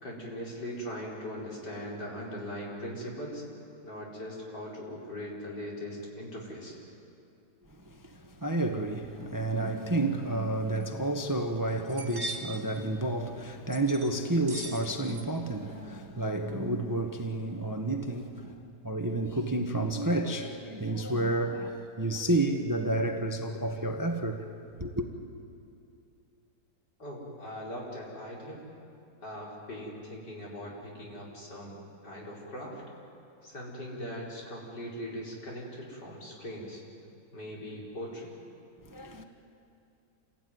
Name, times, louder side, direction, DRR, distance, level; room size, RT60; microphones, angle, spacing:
voice 1, 0.0-3.4 3.8-6.8 27.0-28.6 29.2-31.8 32.0-32.8 33.4-36.8 37.3-38.3, equal, 75° left, 5.4 m, -40 dB
voice 2, 7.8-24.5 24.8-25.0 38.8-39.2, right 2 dB, 15° right, 1.0 m, -30 dB
sound 1, 10.7-10.8 11.2-11.3 11.7-12.6 13.7-14.1 14.5-15.2 15.5-15.9, right 3 dB, 35° right, 2.4 m, -40 dB
27.5 x 17.0 x 9.4 m
omnidirectional pair, 1.8 m